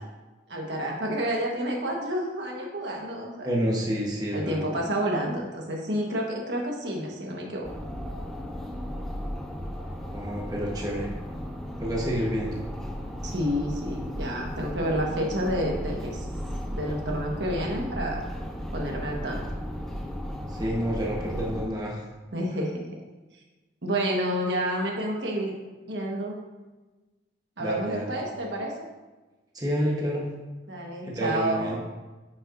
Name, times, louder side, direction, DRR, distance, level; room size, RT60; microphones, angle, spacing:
voice 1, 0.5-3.5 4.3-7.7 13.2-16.3 16.7-18.2 18.7-19.4 22.3-22.8 23.8-25.5 25.9-26.4 27.6-28.7 30.7-31.8, right 1 dB, 75° right, -1 dB, 1.4 m, -29 dB
voice 2, 3.4-4.7 10.1-11.1 11.8-12.6 20.5-22.0 27.6-28.2 29.5-30.3 31.0-31.8, equal, 20° right, -2 dB, 1.1 m, -29 dB
sound 1, 7.6-21.7, equal, 5° left, 0.7 m, -35 dB
9.5 x 6.1 x 2.6 m, 1.2 s
head